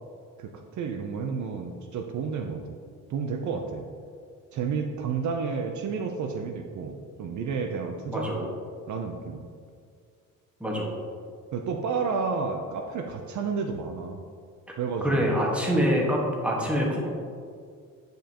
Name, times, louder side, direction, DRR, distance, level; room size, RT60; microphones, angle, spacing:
voice 1, 0.4-2.8 3.1-3.8 4.5-8.3 8.9-9.4 11.5-14.2 14.8-15.3, right 5 dB, 60° right, 4 dB, 0.6 m, -31 dB
voice 2, 8.1-8.5 10.6-10.9 15.0-17.1, equal, 5° right, -3 dB, 1.4 m, -25 dB
9.0 x 5.2 x 2.9 m, 2.1 s
cardioid pair, 115°, 32 cm